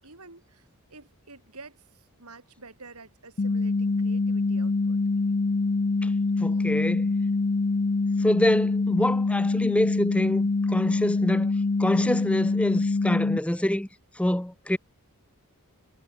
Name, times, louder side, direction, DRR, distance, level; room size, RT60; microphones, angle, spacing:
voice 1, 0.0-5.0, right 3 dB, 90° right, 7.4 m, -49 dB
sound 1, 3.4-13.4, left 3 dB, 40° left, 0.5 m, -25 dB
voice 2, 6.4-7.1 8.2-11.5 11.8-13.9 14.1-14.8, left 1 dB, 5° left, 0.7 m, -26 dB
head